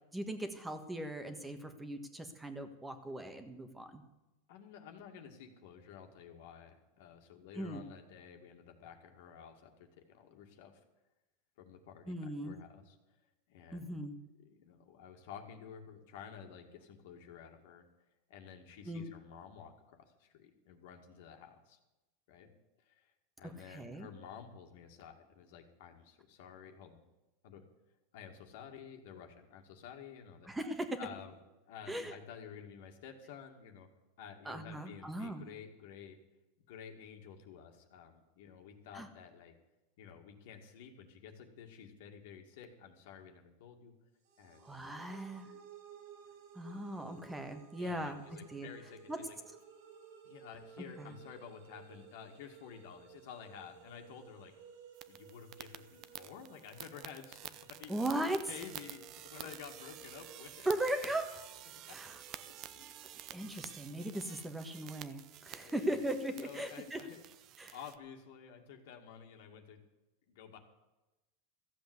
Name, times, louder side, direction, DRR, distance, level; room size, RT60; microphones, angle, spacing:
voice 1, 0.1-4.0 7.6-7.8 12.1-12.6 13.7-14.1 18.8-19.1 23.4-24.1 30.5-31.0 31.9-32.1 34.4-35.5 38.9-39.1 44.6-45.6 46.5-48.7 49.1-49.2 51.0-51.1 57.9-58.5 60.6-61.4 61.9-62.2 63.3-67.0 67.6-67.8, right 1 dB, 5° right, 8 dB, 1.4 m, -38 dB
voice 2, 4.5-10.8 11.6-13.0 13.5-14.0 14.4-17.8 18.3-21.8 22.3-22.5 22.8-27.0 27.4-27.6 28.1-30.5 31.0-31.4 31.7-33.9 34.2-36.2 36.7-39.5 40.0-43.9 44.4-44.9 47.8-49.2 50.2-54.5 55.1-60.7 61.9-62.0 62.4-63.2 65.6-66.0 66.4-67.2 67.7-69.8 70.3-70.6, left 7 dB, 65° left, 4 dB, 2.1 m, -52 dB
sound 1, 44.3-60.6, right 7 dB, 65° right, 2.4 m, -57 dB
sound 2, 54.9-68.0, right 12 dB, 35° right, 0.7 m, -50 dB
14.5 x 7.9 x 8.1 m, 1.0 s
supercardioid pair, 150°, 0 cm